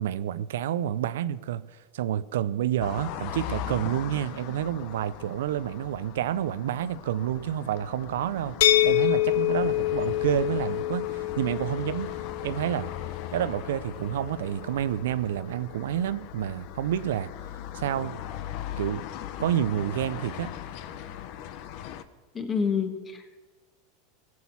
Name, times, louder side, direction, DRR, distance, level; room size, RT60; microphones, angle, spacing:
voice 1, 0.0-12.1 12.4-12.9 13.3-17.3 17.7-18.2 18.8-19.0 19.4-20.5, right 11 dB, 85° right, 15 dB, 0.5 m, -29 dB
sound 1, 2.8-22.0, left 11 dB, 55° left, 0.8 m, -39 dB
sound 2, 8.6-14.4, left 14 dB, 75° left, 0.4 m, -27 dB
voice 2, 22.3-23.4, left 6 dB, 25° left, 7 dB, 1.4 m, -28 dB
17.5 x 6.2 x 7.1 m, 1.3 s
supercardioid pair, 125°, 0 cm